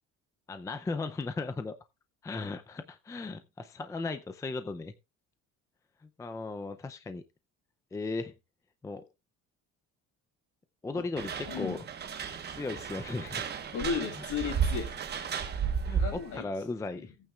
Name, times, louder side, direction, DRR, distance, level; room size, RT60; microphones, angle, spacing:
voice 1, 0.5-1.7 2.2-4.9 6.2-7.2 7.9-8.3 8.8-9.1 10.8-11.8 12.5-13.4 15.9-17.1, left 3 dB, 10° left, 9 dB, 0.5 m, -36 dB
sound 1, 11.2-16.4, right 7 dB, 35° right, 1.2 m, -33 dB
voice 2, 11.5-11.8 13.7-14.9 16.0-16.5 16.9-17.1, left 6 dB, 65° left, 2 dB, 5.6 m, -34 dB
17.0 x 8.9 x 2.4 m, 0.24 s
cardioid pair, 155°, 31 cm